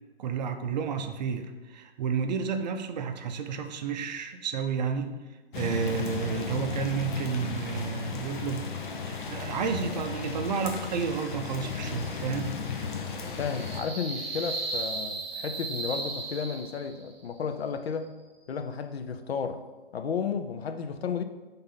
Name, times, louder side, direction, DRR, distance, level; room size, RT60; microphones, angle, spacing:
voice 1, 0.2-5.1 5.5-8.7 9.0-12.6, right 6 dB, 45° right, 7 dB, 0.6 m, -31 dB
sound 1, 5.5-13.8, left 5 dB, 50° left, 0.9 m, -35 dB
sound 2, 11.2-17.1, right 3 dB, 20° right, 1.4 m, -37 dB
voice 2, 13.4-18.1 18.5-19.6 19.9-21.2, left 6 dB, 80° left, 8 dB, 0.7 m, -33 dB
5.4 x 3.8 x 5.7 m, 1.3 s
hypercardioid pair, 140°, 31 cm